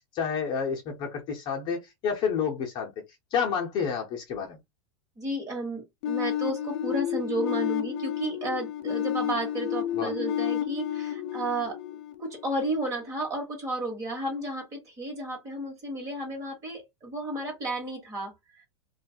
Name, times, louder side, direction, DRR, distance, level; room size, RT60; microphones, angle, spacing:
voice 1, 0.1-2.9 3.3-4.6 9.9-10.1, left 6 dB, 30° left, 0.8 m, -29 dB
voice 2, 5.2-11.8 12.2-18.6, right 1 dB, 20° right, 1.3 m, -33 dB
sound 1, 6.0-12.8, left 10 dB, 60° left, 0.8 m, -31 dB
2.8 x 2.3 x 2.8 m
supercardioid pair, 160°, 15 cm